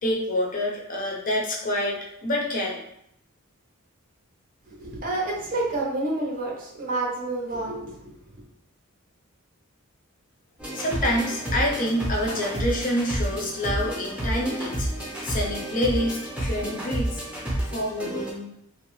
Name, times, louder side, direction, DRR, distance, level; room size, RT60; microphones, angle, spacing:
voice 1, 0.0-2.8 10.7-17.2 17.7-18.5, left 1 dB, 40° left, -1 dB, 0.5 m, -27 dB
voice 2, 4.7-8.0, right 2 dB, 40° right, -2 dB, 0.6 m, -29 dB
sound 1, 10.6-18.3, right 1 dB, 5° right, 0.6 m, -30 dB
2.6 x 2.0 x 3.1 m, 0.76 s
head